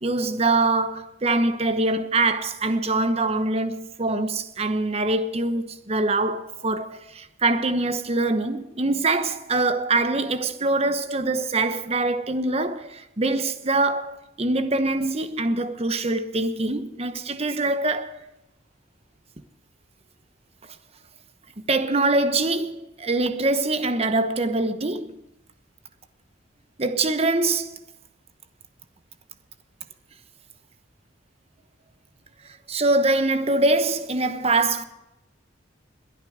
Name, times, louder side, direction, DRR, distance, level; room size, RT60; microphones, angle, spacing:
voice 1, 0.0-18.2 21.7-25.1 26.8-27.8 32.7-34.8, right 2 dB, 30° right, 1.0 m, -24 dB
22.0 x 9.1 x 5.0 m
head